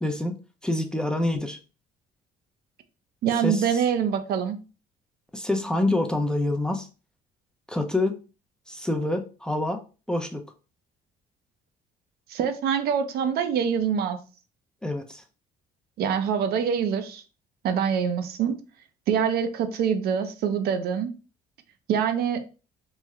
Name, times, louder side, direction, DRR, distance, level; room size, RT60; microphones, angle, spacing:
voice 1, 0.0-1.6 3.4-3.6 5.3-6.9 7.7-8.2 8.7-9.8 10.1-10.5 14.8-15.2, left 2 dB, 5° left, 0.4 m, -26 dB
voice 2, 3.2-4.6 12.3-14.2 16.0-17.2 17.6-18.6 19.1-21.1 21.9-22.4, right 7 dB, 70° right, 0.5 m, -25 dB
3.1 x 2.1 x 3.5 m
cardioid pair, 110°, 17 cm